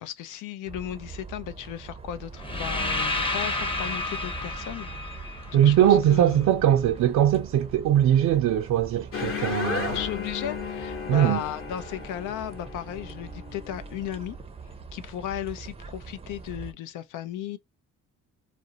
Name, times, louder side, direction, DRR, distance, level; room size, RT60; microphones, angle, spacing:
voice 1, 0.0-4.9 5.2-6.5 9.9-14.4 14.9-17.6, left 11 dB, 85° left, 0.5 m, -35 dB
sound 1, 0.7-16.7, right 5 dB, 20° right, 0.5 m, -43 dB
sound 2, 2.4-6.4, left 2 dB, 20° left, 0.7 m, -31 dB
voice 2, 5.5-10.0 11.1-11.4, right 11 dB, 70° right, 0.5 m, -21 dB
sound 3, 9.1-14.1, left 6 dB, 45° left, 1.0 m, -34 dB
2.4 x 2.0 x 2.7 m
cardioid pair, 90°, 30 cm